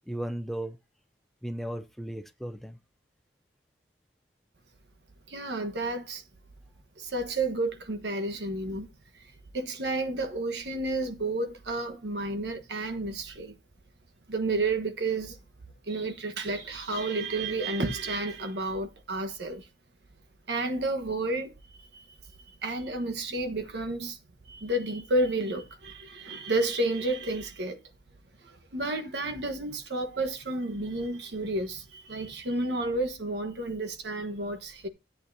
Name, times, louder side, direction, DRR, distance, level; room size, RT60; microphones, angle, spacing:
voice 1, 0.1-0.8 1.4-2.8, right 1 dB, ahead, 0.5 m, -35 dB
voice 2, 5.3-6.2 7.0-8.9 9.1-13.6 14.3-15.4 15.8-19.7 20.5-22.2 22.4-24.2 24.5-27.8 28.4-34.9, right 2 dB, 75° right, 1.3 m, -31 dB
13.5 x 8.5 x 2.7 m
head